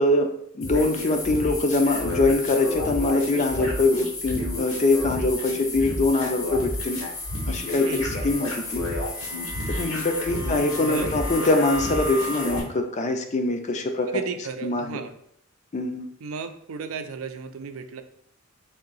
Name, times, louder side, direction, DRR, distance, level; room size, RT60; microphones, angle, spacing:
voice 1, 0.0-7.0 7.5-8.8 9.7-14.2 14.6-15.0 15.7-16.1, left 2 dB, 35° left, 5 dB, 0.5 m, -23 dB
sound 1, 0.6-12.6, left 1 dB, 70° left, 1.2 m, -30 dB
voice 2, 10.2-11.1 14.1-15.2 16.2-18.0, right 5 dB, 80° right, 8 dB, 0.4 m, -34 dB
3.7 x 2.7 x 3.9 m, 0.69 s
head